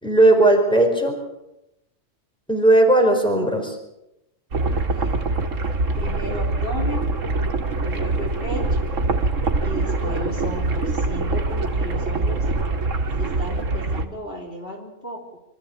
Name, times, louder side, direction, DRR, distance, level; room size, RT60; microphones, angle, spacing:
voice 1, 0.0-1.2 2.5-3.8, right 2 dB, 5° left, 2 dB, 4.6 m, -16 dB
sound 1, 4.5-14.1, right 3 dB, 85° right, 2.0 m, -24 dB
voice 2, 4.7-5.2 5.9-7.1 7.8-8.6 9.6-12.5 13.2-15.4, left 1 dB, 50° left, 0 dB, 3.7 m, -34 dB
25.0 x 14.0 x 8.7 m, 0.89 s
omnidirectional pair, 1.3 m